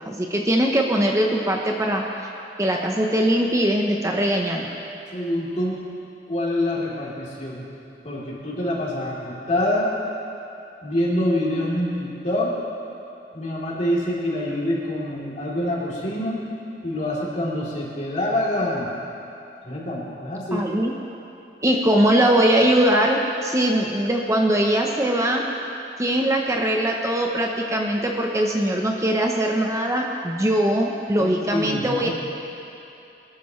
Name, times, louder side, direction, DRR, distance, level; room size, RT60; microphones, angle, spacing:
voice 1, 0.1-2.0 2.6-4.8 20.5-20.9 21.6-25.4 26.0-32.1, right 1 dB, 20° right, 0 dB, 0.8 m, -21 dB
voice 2, 5.1-5.9 6.3-7.6 8.0-9.9 10.8-12.5 13.3-16.4 16.8-18.9 19.6-20.7 31.2-32.1, left 1 dB, 45° left, -6 dB, 3.3 m, -26 dB
22.0 x 13.0 x 3.2 m, 2.8 s
head